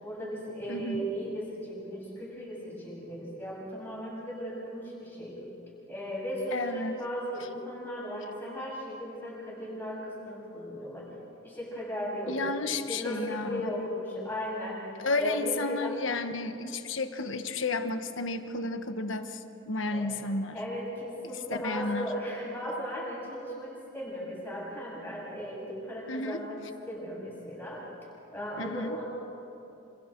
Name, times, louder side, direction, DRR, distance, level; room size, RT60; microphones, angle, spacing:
voice 1, 0.0-5.4 5.9-11.1 11.4-12.4 12.6-14.9 15.1-16.0 19.9-20.3 20.5-26.6 26.9-27.9 28.3-29.0, equal, 10° left, -6 dB, 7.3 m, -36 dB
voice 2, 0.7-1.1 6.5-6.9 12.3-13.9 15.0-19.4 19.7-20.6 21.5-22.1 26.1-26.4 28.6-29.0, left 3 dB, 75° left, 8 dB, 1.3 m, -32 dB
27.5 x 26.5 x 4.6 m, 2.7 s
head